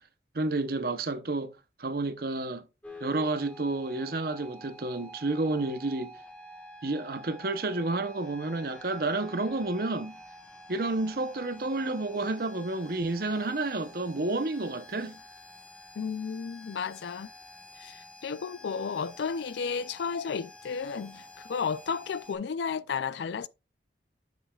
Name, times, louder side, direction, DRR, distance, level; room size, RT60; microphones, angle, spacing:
voice 1, 0.3-1.5 1.8-2.6 3.0-6.1 6.8-10.2 10.7-15.2, right 2 dB, 55° right, 0.7 m, -30 dB
sound 1, 2.8-22.4, left 1 dB, 5° left, 1.3 m, -49 dB
voice 2, 16.0-17.3 17.8-23.5, left 6 dB, 75° left, 0.4 m, -33 dB
7.9 x 7.0 x 2.3 m
head